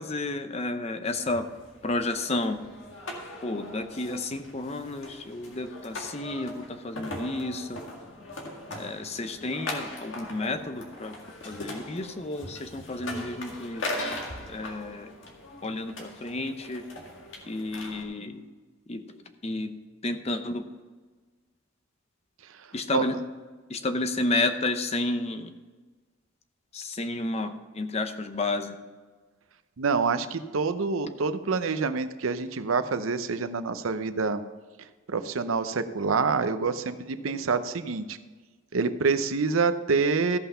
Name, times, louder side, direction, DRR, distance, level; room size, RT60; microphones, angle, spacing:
voice 1, 0.0-1.5 1.8-2.6 3.4-7.8 8.7-13.9 14.5-15.1 15.6-16.9 17.5-18.5 18.9-19.7 20.0-20.7 22.7-23.2 23.7-25.5 26.7-28.8, left 2 dB, 30° left, 9 dB, 0.7 m, -31 dB
sound 1, 1.1-18.0, left 1 dB, 65° left, 1.9 m, -40 dB
voice 2, 29.8-34.4 35.1-38.2 38.7-40.4, right 4 dB, 85° right, 11 dB, 0.7 m, -26 dB
14.5 x 5.7 x 5.6 m, 1.4 s
head